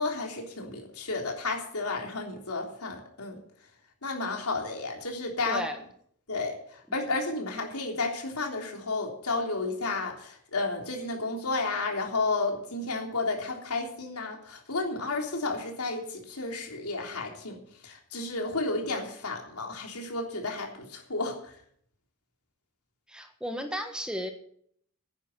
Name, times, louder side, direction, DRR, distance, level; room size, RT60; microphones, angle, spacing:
voice 1, 0.0-3.4 4.0-5.6 6.3-6.6 6.9-17.6 17.8-21.5, left 3 dB, 80° left, 1 dB, 3.4 m, -32 dB
voice 2, 5.4-5.8 23.1-24.3, equal, 5° right, 5 dB, 1.5 m, -34 dB
10.5 x 10.5 x 7.7 m, 0.63 s
head